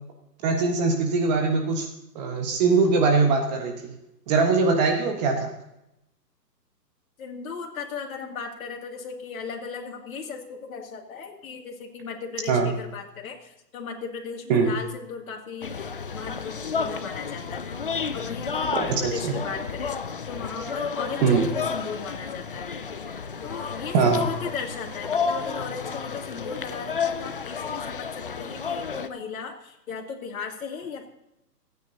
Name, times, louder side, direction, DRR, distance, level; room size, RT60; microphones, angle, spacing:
voice 1, 0.4-1.9 2.1-3.9 4.3-5.5 12.5-12.7 14.5-14.7 18.7-19.3 21.2-21.4 23.9-24.3, right 4 dB, 25° right, 2 dB, 1.3 m, -22 dB
voice 2, 7.2-17.8 18.1-20.0 20.3-22.9 23.1-31.1, left 5 dB, 55° left, 1 dB, 2.5 m, -37 dB
sound 1, 15.6-29.1, left 5 dB, 35° left, 0.4 m, -31 dB
27.0 x 9.4 x 2.8 m, 0.86 s
hypercardioid pair, 145°, 49 cm